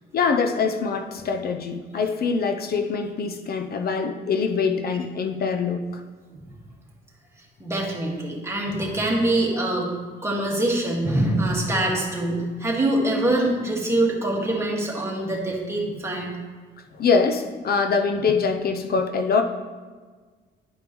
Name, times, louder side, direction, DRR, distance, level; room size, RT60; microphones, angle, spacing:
voice 1, 0.1-5.8 17.0-19.4, left 5 dB, 50° left, 6 dB, 0.6 m, -24 dB
voice 2, 7.6-9.9 10.2-16.3, right 1 dB, 15° right, -3 dB, 1.8 m, -24 dB
10.5 x 5.1 x 3.1 m, 1.5 s
cardioid pair, 90°, 20 cm